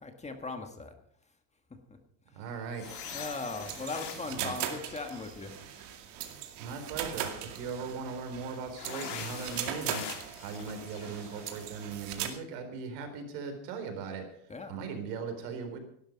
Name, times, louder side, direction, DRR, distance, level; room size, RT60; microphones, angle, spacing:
voice 1, 0.0-0.9 1.7-1.8 2.3-2.8 3.1-5.5 14.5-14.7, left 3 dB, 15° left, 6 dB, 1.6 m, -39 dB
voice 2, 2.3-2.8 4.3-4.5 6.6-14.2 14.7-15.8, right 5 dB, 85° right, 6 dB, 4.1 m, -39 dB
sound 1, 2.7-5.8 8.7-11.9, left 7 dB, 55° left, 3.6 m, -44 dB
sound 2, 2.8-12.3, right 10 dB, 55° right, 2.4 m, -40 dB
17.0 x 12.0 x 5.3 m, 0.69 s
cardioid pair, 150°, 49 cm